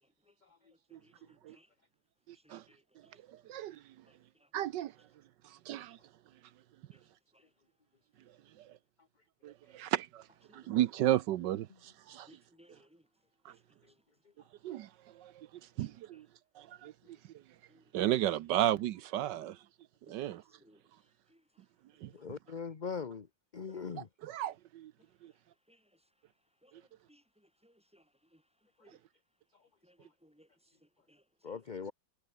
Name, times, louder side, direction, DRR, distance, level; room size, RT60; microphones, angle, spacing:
voice 1, 0.6-1.7 2.3-3.2 4.1-4.5 6.9-7.1 7.3-7.4 10.5-10.7 12.3-13.1 13.5-13.8 15.8-16.2 17.7-17.8 19.3-19.5 20.1-20.8 21.3-21.6 23.7-23.8 25.7-26.0 26.6-28.4 28.8-29.0 29.8-31.6, equal, 5° right, 6.8 m, -65 dB
voice 2, 2.3-2.6 3.5-3.8 4.5-4.9 5.4-6.0 8.6-8.7 9.4-10.2 10.5-12.3 13.4-13.5 14.6-14.9 15.2-15.5 15.8-16.3 16.6-16.9 17.9-19.6 20.1-20.4 22.0-22.1 24.2-24.9 25.2-25.3, right 13 dB, 80° right, 1.4 m, -33 dB
voice 3, 22.1-23.3 23.5-24.1 31.4-31.9, left 6 dB, 30° left, 0.9 m, -40 dB
omnidirectional pair, 1.9 m